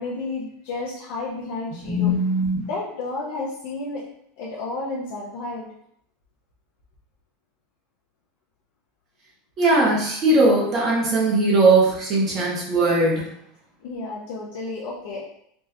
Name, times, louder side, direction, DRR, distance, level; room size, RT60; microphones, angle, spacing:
voice 1, 0.0-2.1 2.6-4.0 4.4-5.7 13.8-15.2, left 3 dB, 65° left, -6 dB, 0.8 m, -31 dB
voice 2, 1.7-2.7 9.6-13.3, right 2 dB, 25° right, -3 dB, 1.0 m, -19 dB
4.6 x 2.7 x 2.7 m, 0.71 s
supercardioid pair, 175°, 0 cm